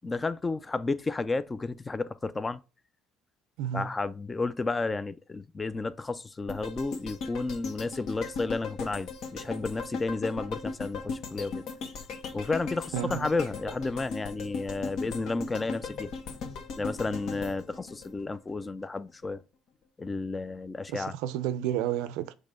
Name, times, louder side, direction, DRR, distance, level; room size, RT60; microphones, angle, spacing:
voice 1, 0.0-2.6 3.7-11.6 12.3-16.5 16.8-19.4 20.0-21.1, left 3 dB, 20° left, 0.4 m, -32 dB
sound 1, 6.5-18.7 19.1-19.2, left 4 dB, 65° left, 1.3 m, -38 dB
voice 2, 12.9-13.3 20.9-22.3, right 11 dB, 90° right, 0.5 m, -31 dB
6.5 x 3.2 x 5.1 m
cardioid pair, 115°, 0 cm